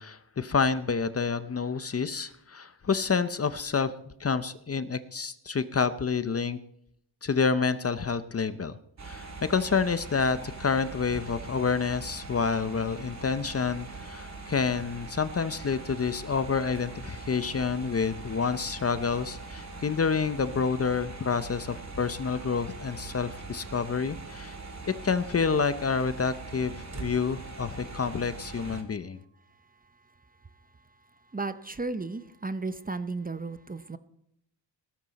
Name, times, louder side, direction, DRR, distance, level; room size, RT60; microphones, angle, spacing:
voice 1, 0.0-3.9 4.2-6.6 7.2-8.7 9.0-24.6 25.0-29.2, left 5 dB, 30° left, 13 dB, 0.7 m, -28 dB
sound 1, 9.0-28.8, right 3 dB, 35° right, 2.3 m, -42 dB
voice 2, 31.3-34.0, right 3 dB, 20° right, 12 dB, 0.8 m, -34 dB
17.0 x 13.5 x 4.2 m, 0.74 s
cardioid pair, 100°, 45 cm